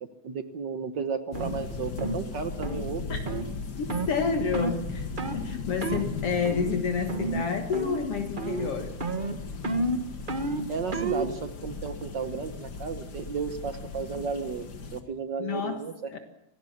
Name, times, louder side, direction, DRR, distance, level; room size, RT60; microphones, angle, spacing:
voice 1, 0.2-3.2 10.7-16.2, right 5 dB, 60° right, 10 dB, 1.1 m, -34 dB
sound 1, 1.3-15.0, left 4 dB, 40° left, 1.9 m, -37 dB
sound 2, 1.3-1.5 2.0-2.2 2.6-2.8 3.3-3.5 3.9-4.1 4.5-4.8 5.2-5.4 5.8-6.1 6.4-6.8 7.1-7.5 7.7-8.1 8.4-8.7 9.0-11.3, right 2 dB, 75° right, 0.4 m, -30 dB
voice 2, 3.8-5.1 5.3-9.0 15.4-15.8 16.1-16.2, left 5 dB, 55° left, 5 dB, 2.3 m, -29 dB
26.5 x 17.0 x 7.3 m, 0.81 s
omnidirectional pair, 3.3 m